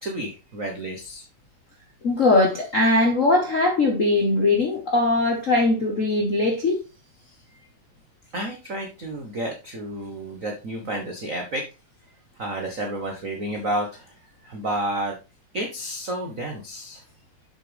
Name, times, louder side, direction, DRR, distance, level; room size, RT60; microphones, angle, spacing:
voice 1, 0.0-1.3 7.2-7.7 8.3-11.7 12.4-15.1 15.5-17.0, right 1 dB, 80° right, 0.7 m, -31 dB
voice 2, 2.0-6.8, left 2 dB, 75° left, 0.7 m, -20 dB
7.3 x 6.6 x 3.4 m
omnidirectional pair, 3.3 m